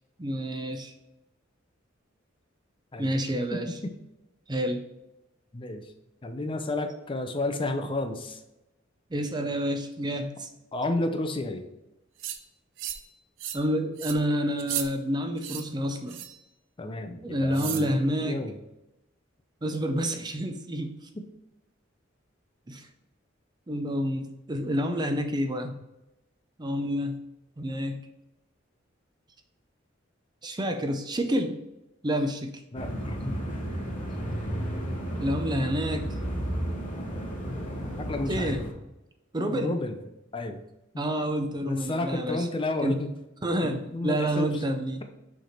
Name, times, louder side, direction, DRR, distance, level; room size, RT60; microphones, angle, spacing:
voice 1, 0.2-0.9 3.0-3.7 4.5-4.8 9.1-10.5 13.5-16.2 17.2-18.5 19.6-21.1 22.7-22.9 23.7-25.7 26.6-27.2 27.6-28.0 30.4-31.6 32.0-32.5 35.2-36.2 38.3-38.6 39.3-39.8 41.0-42.4 42.8-43.0 43.4-45.0, equal, 20° right, 6 dB, 0.5 m, -28 dB
voice 2, 3.5-3.9 5.5-5.9 6.2-8.4 10.7-11.7 16.8-17.9 18.2-18.6 21.1-21.3 32.7-33.4 38.0-38.6 39.5-40.0 40.3-40.6 40.9-41.0 41.6-43.1 43.6-44.6, left 2 dB, 25° left, 6 dB, 0.5 m, -31 dB
sound 1, 12.2-12.4 12.8-13.1 13.4-13.7 14.0-14.2 14.6-14.9 15.4-15.6 16.1-16.4 17.5-17.9, right 10 dB, 75° right, 0.5 m, -34 dB
sound 2, 32.7-38.7, equal, 40° left, 1.9 m, -32 dB
6.4 x 3.4 x 4.4 m, 0.94 s
head